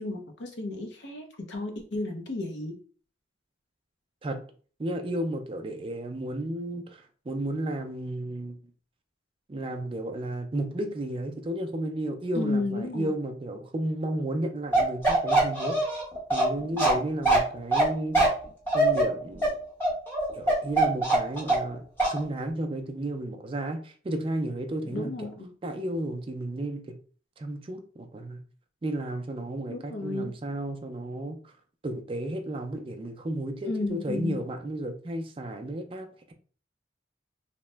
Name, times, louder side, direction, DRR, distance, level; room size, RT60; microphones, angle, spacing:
voice 1, 0.0-2.8 12.3-13.1 16.5-16.7 24.8-25.5 29.7-30.3 33.6-34.5, left 2 dB, 70° left, 0.6 m, -33 dB
voice 2, 4.8-8.6 9.5-16.0 16.3-18.2 18.7-19.5 20.3-25.3 25.6-27.0 27.4-28.4 28.8-31.5 31.8-36.3, right 1 dB, 30° right, 0.4 m, -33 dB
Bark, 14.7-21.7 22.0-22.2, right 2 dB, 10° left, 1.0 m, -23 dB
2.8 x 2.1 x 3.2 m
head